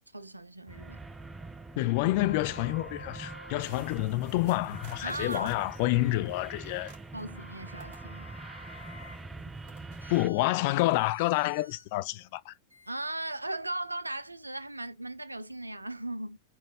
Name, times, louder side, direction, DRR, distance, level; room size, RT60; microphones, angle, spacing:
voice 1, 0.1-1.0 5.0-5.5 7.1-8.3 12.9-16.4, right 2 dB, 85° right, 0.4 m, -37 dB
sound 1, 0.7-10.3, right 3 dB, 10° right, 0.5 m, -44 dB
voice 2, 1.8-6.9 10.1-12.5, left 18 dB, 50° left, 0.3 m, -28 dB
sound 2, 2.2-4.0 4.7-6.6 7.3-9.3 10.0-11.9 12.7-12.9, left 2 dB, 85° left, 0.6 m, -51 dB
sound 3, 3.6-7.5 7.8-10.2, right 2 dB, 45° right, 1.9 m, -56 dB
4.2 x 2.2 x 3.4 m
figure-of-eight pair, 90°, 0 cm